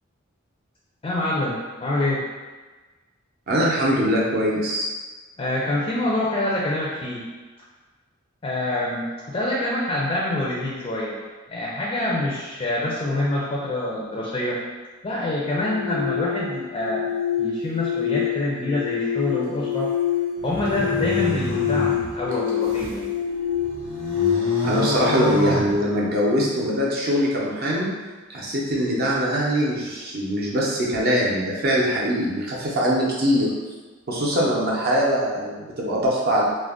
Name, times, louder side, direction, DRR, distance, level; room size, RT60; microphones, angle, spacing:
voice 1, 1.0-2.2 5.4-7.2 8.4-11.2 11.5-14.6 15.0-17.0 17.4-19.9 20.4-23.1 25.4-25.7 26.4-26.5, left 1 dB, 25° left, -5 dB, 0.4 m, -26 dB
voice 2, 3.5-4.9 24.6-27.9 28.3-33.5 34.1-36.4, equal, 50° right, -4 dB, 0.5 m, -22 dB
sound 1, 15.5-26.5, left 9 dB, 80° left, 0.7 m, -27 dB
sound 2, 20.4-23.0 23.5-26.3, right 1 dB, 85° right, 0.7 m, -30 dB
2.4 x 2.0 x 3.5 m, 1.3 s
head